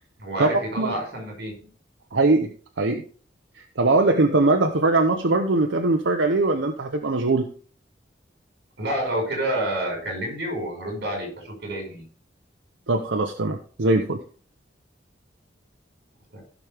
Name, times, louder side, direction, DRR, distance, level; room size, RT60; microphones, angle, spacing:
voice 1, 0.2-1.6 8.8-12.0 16.3-16.4, right 1 dB, 60° right, 1 dB, 5.2 m, -29 dB
voice 2, 2.1-2.5 2.8-3.0 3.6-7.5 12.9-14.2, right 2 dB, 90° right, 5 dB, 0.9 m, -21 dB
15.5 x 6.1 x 3.5 m, 0.42 s
head